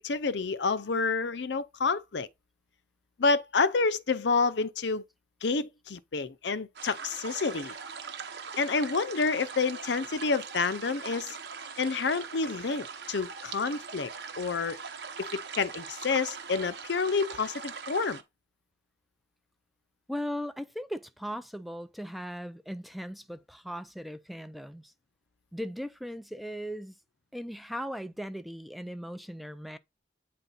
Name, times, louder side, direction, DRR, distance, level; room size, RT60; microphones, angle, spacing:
voice 1, 0.0-2.3 3.2-5.0 5.4-7.7 8.6-11.4 11.8-14.8 15.2-18.2, left 4 dB, 70° left, 0.6 m, -29 dB
sound 1, 6.8-18.2, right 5 dB, 65° right, 1.0 m, -41 dB
voice 2, 20.1-24.9 25.5-27.0 27.3-29.8, equal, ahead, 0.4 m, -38 dB
9.0 x 4.2 x 3.9 m
head